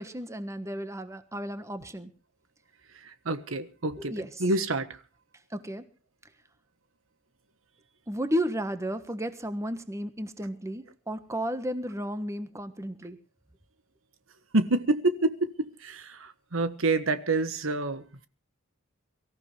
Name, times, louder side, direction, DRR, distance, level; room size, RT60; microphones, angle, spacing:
voice 1, 0.0-2.1 4.0-4.3 5.5-5.8 8.1-13.2, equal, 15° right, 1.4 m, -33 dB
voice 2, 3.2-5.0 14.5-18.3, right 2 dB, 75° right, 1.3 m, -28 dB
24.0 x 14.5 x 3.3 m
head